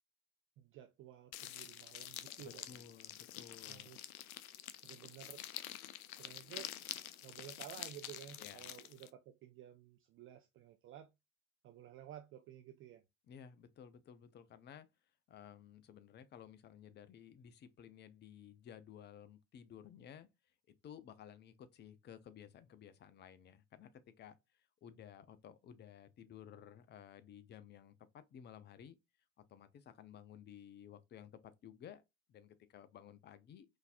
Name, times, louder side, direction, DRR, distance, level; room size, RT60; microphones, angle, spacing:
voice 1, 0.6-2.8 3.7-4.1 4.8-5.5 6.2-6.7 7.2-11.1 11.6-13.0, right 11 dB, 30° right, 0.4 m, -54 dB
sound 1, 1.3-9.1, left 12 dB, 75° left, 0.5 m, -48 dB
voice 2, 2.4-3.9 8.4-8.7 13.3-14.9 15.3-20.3 20.8-29.0 29.5-32.0 32.3-33.7, left 9 dB, 25° left, 0.5 m, -55 dB
3.8 x 2.6 x 2.5 m
hypercardioid pair, 70°, 43 cm